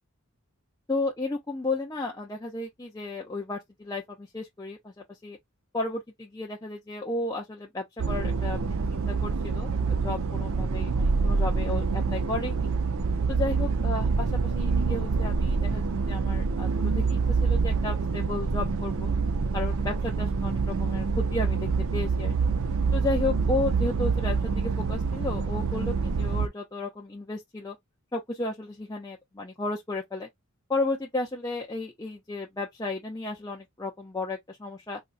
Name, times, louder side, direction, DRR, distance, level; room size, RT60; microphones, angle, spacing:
voice 1, 0.9-5.4 5.7-12.7 13.3-14.3 14.5-19.1 19.5-22.5 22.9-27.8 28.1-30.3 30.7-35.0, left 2 dB, 15° left, 0.5 m, -33 dB
sound 1, 8.0-26.5, right 4 dB, 65° right, 0.5 m, -26 dB
3.9 x 2.3 x 2.4 m
head